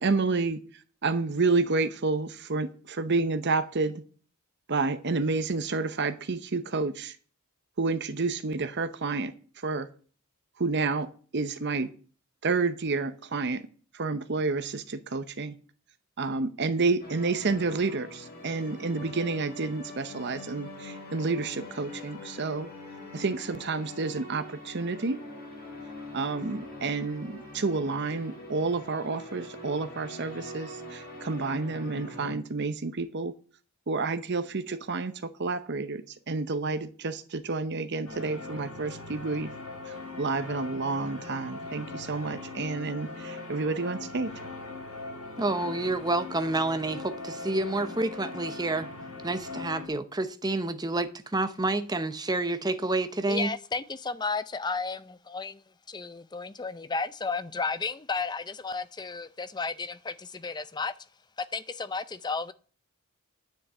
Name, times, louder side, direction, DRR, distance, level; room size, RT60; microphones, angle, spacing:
voice 1, 0.0-4.0 4.7-7.2 7.8-9.9 10.6-11.1 11.3-11.9 12.4-13.7 13.9-15.6 16.2-22.7 23.1-25.2 26.1-33.3 33.9-39.5 39.9-44.3, right 3 dB, 50° right, 0.8 m, -30 dB
sound 1, 17.0-32.3, left 1 dB, 45° left, 4.8 m, -43 dB
sound 2, 38.1-49.9, left 3 dB, 85° left, 4.5 m, -40 dB
voice 2, 45.4-48.9 49.2-53.5, right 2 dB, 20° right, 0.8 m, -29 dB
voice 3, 53.3-60.9 61.4-62.5, left 4 dB, 20° left, 0.5 m, -33 dB
9.9 x 6.5 x 7.9 m
head